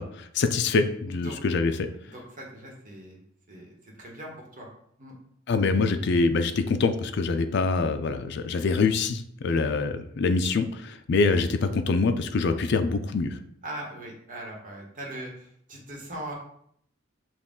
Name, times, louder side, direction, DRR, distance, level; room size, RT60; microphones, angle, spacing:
voice 1, 0.0-1.9 5.5-13.4, left 4 dB, 60° left, 8 dB, 0.4 m, -25 dB
voice 2, 1.1-1.4 2.0-4.7 5.0-5.1 9.5-9.7 13.6-16.3, right 1 dB, 45° right, -1 dB, 1.2 m, -40 dB
6.1 x 2.4 x 3.7 m, 0.68 s
head